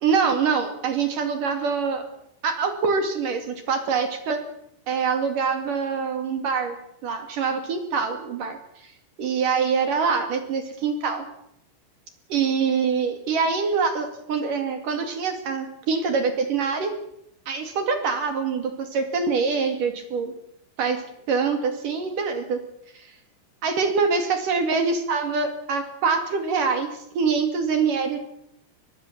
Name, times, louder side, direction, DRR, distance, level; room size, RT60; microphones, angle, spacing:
voice 1, 0.0-2.0 2.4-4.4 4.9-6.8 7.0-8.9 9.2-11.2 12.3-16.9 17.5-20.3 20.8-21.0 21.3-22.6 22.9-23.1 23.6-28.2, right 5 dB, 50° right, 7 dB, 3.3 m, -24 dB
23.0 x 22.0 x 7.5 m, 0.75 s
omnidirectional pair, 5.9 m